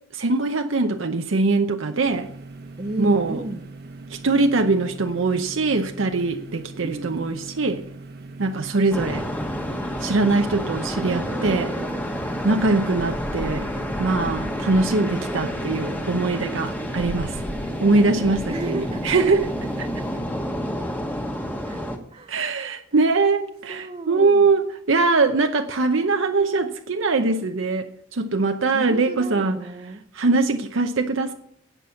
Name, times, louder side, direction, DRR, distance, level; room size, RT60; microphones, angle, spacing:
voice 1, 0.1-2.3 3.0-3.4 4.1-7.8 8.4-9.3 10.0-11.7 12.4-13.7 14.0-17.4 17.8-19.5 19.8-19.9 22.3-29.6 30.1-31.3, right 3 dB, 70° right, 0.7 m, -22 dB
sound 1, 2.0-20.2, right 3 dB, 50° right, 1.1 m, -41 dB
voice 2, 2.8-3.6 6.8-7.2 11.0-12.0 12.7-13.0 18.5-19.1 20.8-21.0 21.6-24.5 28.7-30.0, right 2 dB, 30° right, 0.6 m, -35 dB
sound 2, 8.9-22.0, equal, 10° left, 1.3 m, -29 dB
17.0 x 6.1 x 7.0 m
head